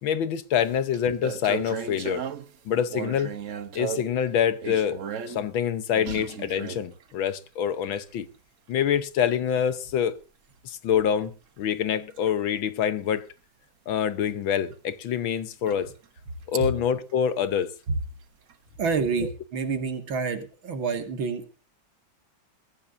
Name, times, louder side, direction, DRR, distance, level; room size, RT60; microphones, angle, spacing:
voice 1, 0.0-2.2 2.7-3.3 3.8-5.0 5.3-8.3 8.7-10.2 10.6-13.3 13.9-15.9 16.5-17.7 19.2-19.3, left 8 dB, 80° left, 1.8 m, -26 dB
sound 1, 0.7-0.8 0.9-2.6 2.9-4.2 4.6-5.5 5.9-7.1 7.8-8.0 9.7-9.9 11.6-11.7 12.1-12.3 14.7-14.8 15.2-15.3 15.7-16.1 18.5-18.6, right 7 dB, 50° right, 1.1 m, -35 dB
voice 2, 18.8-21.6, right 5 dB, 80° right, 2.9 m, -28 dB
21.5 x 14.5 x 2.7 m
omnidirectional pair, 2.1 m